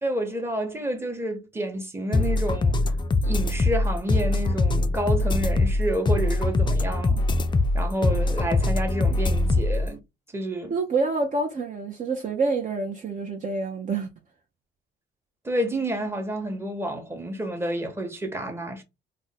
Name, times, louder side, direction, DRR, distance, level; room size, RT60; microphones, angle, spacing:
voice 1, 0.0-2.8 3.2-7.2 7.7-10.0 10.3-10.8 15.4-18.8, right 1 dB, 10° right, 0.9 m, -29 dB
sound 1, 2.1-9.9, left 2 dB, 25° left, 0.4 m, -23 dB
voice 2, 10.7-14.1, right 3 dB, 40° right, 0.6 m, -27 dB
2.5 x 2.1 x 4.0 m
cardioid pair, 90°, 20 cm